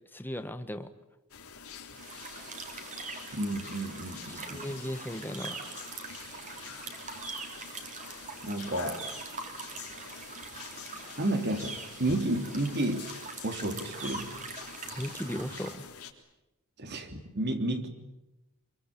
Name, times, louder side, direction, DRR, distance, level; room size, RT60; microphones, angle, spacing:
voice 1, 0.1-0.9 4.3-5.6 15.0-15.9, equal, 10° left, 9 dB, 1.3 m, -37 dB
sound 1, 1.3-16.1, left 6 dB, 80° left, 3.5 m, -46 dB
sound 2, 1.9-15.7, right 4 dB, 35° right, 3.7 m, -43 dB
voice 2, 3.3-4.7 8.4-9.0 11.2-13.1 13.4-14.3 16.8-17.9, right 1 dB, 50° right, 7 dB, 3.1 m, -31 dB
27.0 x 23.5 x 8.5 m, 0.93 s
head